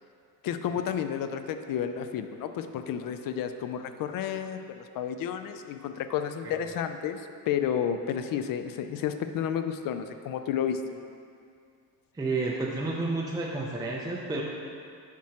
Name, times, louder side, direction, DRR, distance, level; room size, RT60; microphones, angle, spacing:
voice 1, 0.4-10.8, left 8 dB, 65° left, 8 dB, 0.5 m, -31 dB
voice 2, 12.1-14.4, right 3 dB, 10° right, -2 dB, 0.5 m, -30 dB
7.3 x 6.0 x 2.9 m, 2.3 s
cardioid pair, 130°, 37 cm